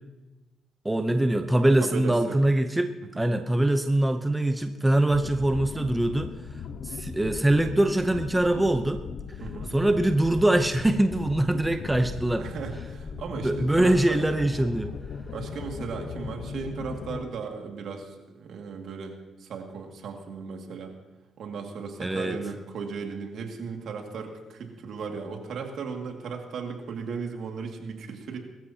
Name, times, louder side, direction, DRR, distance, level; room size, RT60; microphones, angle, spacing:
voice 1, 0.8-2.9 3.2-6.3 6.8-9.0 9.7-12.5 13.3-14.9 22.0-22.4, right 1 dB, 10° right, 7 dB, 0.8 m, -23 dB
voice 2, 1.8-2.4 3.1-3.3 9.4-9.7 12.4-14.2 15.3-20.9 21.4-28.4, right 5 dB, 65° right, 2 dB, 2.2 m, -36 dB
sound 1, 5.1-17.3, left 6 dB, 60° left, 0.9 m, -38 dB
21.5 x 14.0 x 2.9 m, 1.1 s
cardioid pair, 90°, 0 cm